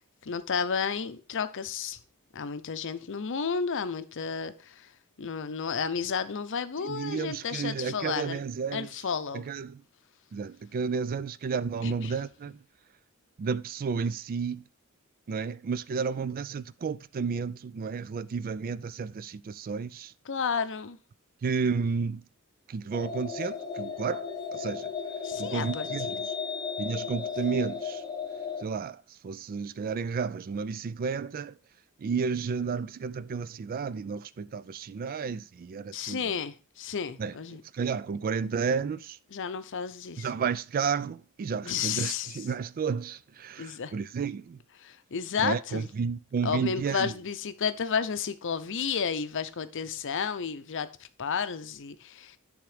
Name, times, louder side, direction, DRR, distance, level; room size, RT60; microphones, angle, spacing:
voice 1, 0.2-2.0 2.3-4.9 5.2-8.4 8.7-9.4 11.8-12.1 20.3-21.0 25.2-26.1 35.9-37.6 39.3-40.3 41.6-42.3 43.6-43.9 44.8-45.9 46.4-50.9 51.2-52.4, left 6 dB, 60° left, 0.6 m, -32 dB
voice 2, 6.8-8.9 9.3-9.8 10.3-12.6 13.4-14.6 15.3-20.1 21.4-22.2 22.7-24.9 25.4-26.2 26.8-28.0 28.6-31.5 32.0-36.4 37.2-37.4 37.7-39.2 40.2-44.6 45.4-47.1, right 5 dB, 40° right, 0.3 m, -32 dB
sound 1, 22.9-28.6, left 6 dB, 20° left, 1.0 m, -35 dB
10.0 x 3.7 x 4.9 m
head